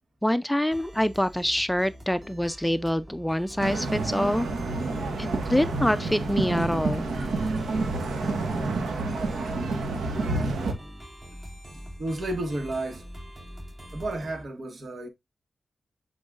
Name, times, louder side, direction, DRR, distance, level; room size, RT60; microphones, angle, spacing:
voice 1, 0.2-4.5 5.2-7.1, equal, 5° left, 0.5 m, -25 dB
sound 1, 0.7-14.4, equal, 25° right, 3.5 m, -44 dB
sound 2, 3.6-10.7, right 3 dB, 85° right, 1.7 m, -28 dB
voice 2, 10.3-10.6 11.7-13.1 13.9-15.1, right 1 dB, 60° right, 1.9 m, -32 dB
8.6 x 4.6 x 2.5 m
cardioid pair, 60°, 0 cm